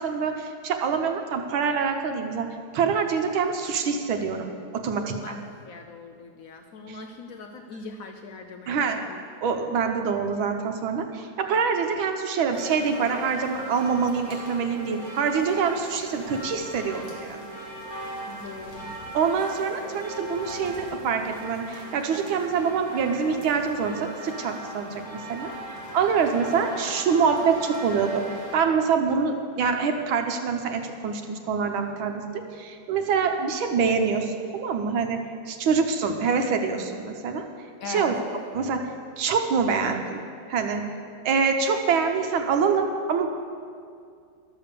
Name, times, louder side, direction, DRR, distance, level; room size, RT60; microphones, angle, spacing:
voice 1, 0.0-2.5 2.7-5.3 6.9-7.0 8.7-9.0 9.4-17.4 19.1-25.0 25.3-25.5 25.9-28.2 28.5-35.2 35.5-37.5 37.9-38.2 38.5-38.9 39.2-40.2 40.5-40.8 41.3-43.3, right 5 dB, 80° right, 5 dB, 1.6 m, -25 dB
voice 2, 5.0-9.2 18.3-18.9 37.8-38.2, left 4 dB, 85° left, 5 dB, 0.7 m, -40 dB
sound 1, 12.5-28.5, right 1 dB, 35° left, 2.5 m, -39 dB
12.5 x 7.0 x 6.7 m, 2.3 s
omnidirectional pair, 2.2 m